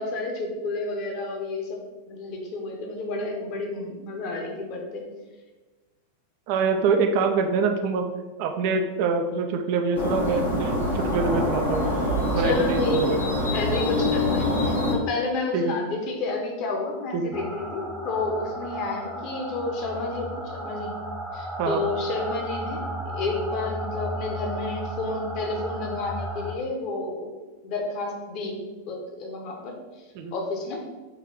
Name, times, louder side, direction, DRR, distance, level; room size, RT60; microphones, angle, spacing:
voice 1, 0.0-1.8 2.1-5.0 12.4-13.3 13.5-20.9 21.3-22.9 23.1-27.4 27.6-28.6 28.9-29.7 30.3-30.8, left 3 dB, 40° left, 1 dB, 0.9 m, -30 dB
voice 2, 6.5-8.1 8.4-11.9 12.3-13.2 15.5-15.7 17.1-17.3 21.6-21.8 30.1-30.3, right 4 dB, 45° right, 5 dB, 0.4 m, -25 dB
sound 1, 9.9-14.9, left 1 dB, 80° left, 1.2 m, -25 dB
sound 2, 17.3-26.5, equal, 5° left, 0.8 m, -34 dB
4.5 x 3.1 x 3.6 m, 1.2 s
figure-of-eight pair, 90°, 0 cm